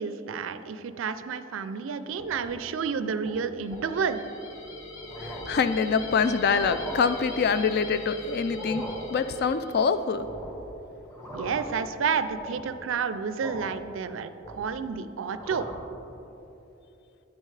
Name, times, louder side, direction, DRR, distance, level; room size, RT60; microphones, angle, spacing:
voice 1, 0.0-4.2 11.3-15.7, right 6 dB, 70° right, 11 dB, 0.4 m, -30 dB
sound 1, 2.1-2.7 3.1-3.3 3.7-3.9 4.5-4.6 5.0-5.7 6.4-7.0 8.4-9.1 10.1-10.7 11.0-11.8 12.2-12.8 13.4-13.8 14.2-14.9 15.2-15.9, right 1 dB, 15° left, 1.1 m, -40 dB
sound 2, 3.6-10.0, left 1 dB, 90° left, 1.0 m, -41 dB
voice 2, 5.2-8.8 9.1-10.3, left 5 dB, 55° left, 12 dB, 0.4 m, -25 dB
9.6 x 9.0 x 3.3 m, 3.0 s
head